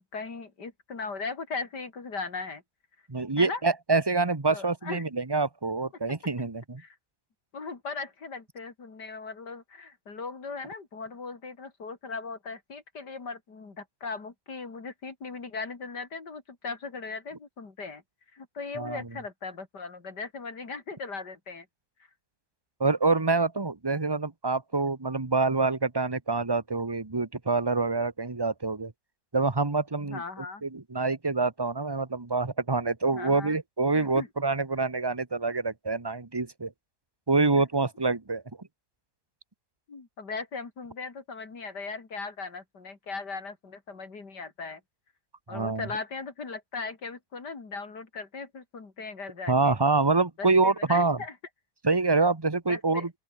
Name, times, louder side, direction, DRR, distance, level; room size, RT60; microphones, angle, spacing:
voice 1, 0.1-2.6 3.4-3.6 4.5-5.0 6.8-7.0 7.5-18.0 18.3-21.7 30.0-30.7 33.1-33.6 33.9-34.3 37.5-37.6 39.9-44.8 45.5-49.8 50.4-51.4 52.7-53.1, left 4 dB, 85° left, 3.9 m, -38 dB
voice 2, 3.1-6.8 18.8-19.0 22.8-28.9 29.3-30.2 30.6-36.7 37.3-38.4 45.5-45.9 49.5-51.2 51.8-53.1, right 3 dB, 15° right, 1.2 m, -26 dB
open air
omnidirectional pair, 1.8 m